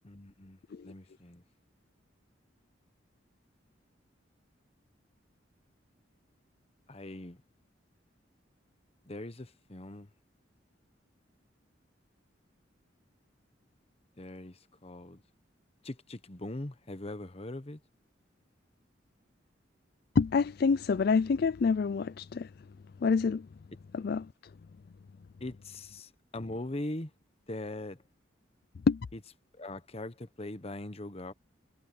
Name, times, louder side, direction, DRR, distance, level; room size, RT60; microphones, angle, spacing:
voice 1, 0.0-0.6 0.8-1.4 6.9-7.4 9.1-10.1 14.2-15.2 15.8-17.8 25.4-27.1 27.5-28.0 29.1-29.2 29.5-31.3, left 1 dB, 30° left, 1.1 m, -41 dB
voice 2, 20.2-22.5 23.0-23.5 23.9-24.3 28.9-29.0, left 5 dB, 55° left, 0.4 m, -27 dB
head